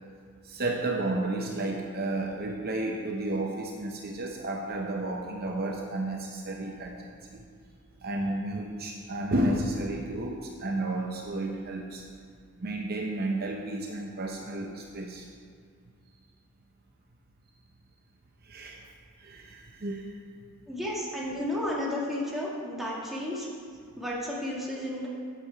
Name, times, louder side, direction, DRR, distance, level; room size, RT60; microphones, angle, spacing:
voice 1, 0.4-7.0 7.3-7.4 8.0-12.0 12.6-15.3 18.4-18.9 19.2-20.1, right 2 dB, 45° right, 1 dB, 0.7 m, -32 dB
voice 2, 20.7-23.5 24.0-25.1, left 1 dB, ahead, -6 dB, 1.9 m, -32 dB
8.6 x 8.4 x 4.6 m, 2.2 s
head